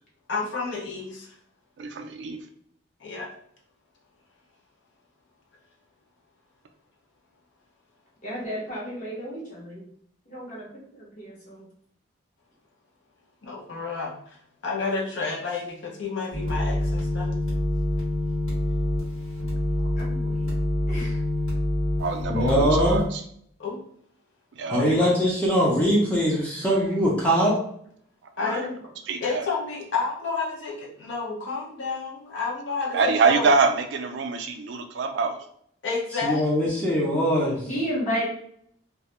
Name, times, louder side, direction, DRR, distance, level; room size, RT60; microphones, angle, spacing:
voice 1, 0.3-1.3 3.0-3.4 13.4-14.4 14.6-17.3 23.6-23.9 24.7-24.8 28.4-28.8 29.2-33.5 35.8-37.1, left 4 dB, 65° left, -2 dB, 0.6 m, -30 dB
voice 2, 1.8-2.4 20.2-20.3 22.0-23.2 24.5-24.9 28.4-28.7 29.1-29.5 32.9-35.4, right 4 dB, 60° right, 5 dB, 0.3 m, -25 dB
voice 3, 8.2-9.8 10.3-10.7 10.9-11.6 20.0-20.5 20.9-21.2 24.8-25.2 37.7-38.2, equal, 35° left, -5 dB, 0.9 m, -33 dB
sound 1, 16.3-23.1, left 1 dB, 85° left, 1.2 m, -26 dB
voice 4, 22.3-23.0 24.7-27.5 36.2-37.6, equal, 5° left, -4 dB, 0.4 m, -22 dB
2.2 x 2.0 x 2.9 m, 0.66 s
head